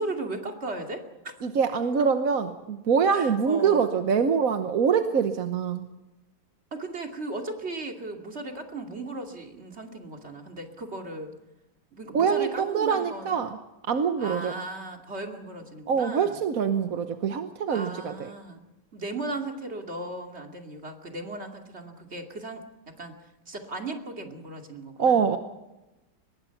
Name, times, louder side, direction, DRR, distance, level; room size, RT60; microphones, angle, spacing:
voice 1, 0.0-1.3 2.0-2.1 3.1-3.9 6.7-11.3 11.9-13.4 14.2-16.4 17.7-18.6 18.9-23.1 23.5-25.3, right 2 dB, 35° right, 3 dB, 2.7 m, -36 dB
voice 2, 1.4-5.9 12.1-13.6 13.9-14.5 15.9-18.3 25.0-25.4, right 6 dB, 50° right, 8 dB, 1.3 m, -24 dB
24.0 x 21.0 x 5.9 m, 0.99 s
omnidirectional pair, 2.1 m